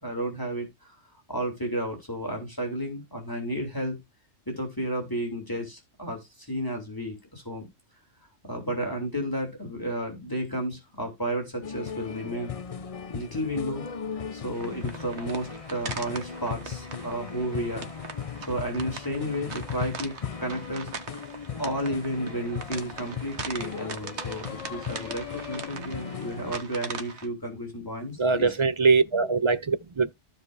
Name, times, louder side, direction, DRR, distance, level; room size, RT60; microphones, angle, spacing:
voice 1, 0.0-0.7 1.3-4.0 4.5-7.7 8.4-12.5 13.1-13.8 14.3-17.9 18.5-20.9 21.6-28.5 29.2-29.3, equal, 15° left, 3.1 m, -32 dB
sound 1, 11.6-26.6, left 7 dB, 40° left, 0.5 m, -37 dB
sound 2, 14.5-27.3, right 5 dB, 65° right, 1.6 m, -41 dB
voice 2, 28.2-30.1, right 4 dB, 40° right, 0.4 m, -22 dB
14.5 x 5.0 x 2.6 m
omnidirectional pair, 1.3 m